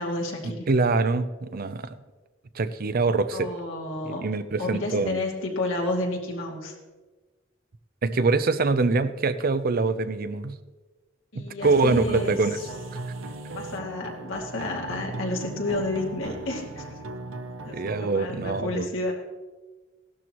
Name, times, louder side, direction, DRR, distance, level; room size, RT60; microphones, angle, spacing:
voice 1, 0.0-0.7 3.3-4.3 4.6-6.7 11.3-12.4 13.5-17.0 17.6-19.1, left 2 dB, 80° left, -1 dB, 2.5 m, -31 dB
voice 2, 0.7-2.0 2.5-3.5 4.2-5.2 8.0-10.5 11.4-12.6 17.7-18.9, right 3 dB, 50° right, 12 dB, 0.6 m, -24 dB
sound 1, 11.6-18.1, right 2 dB, 85° right, 0.7 m, -37 dB
16.5 x 12.5 x 3.0 m, 1.3 s
head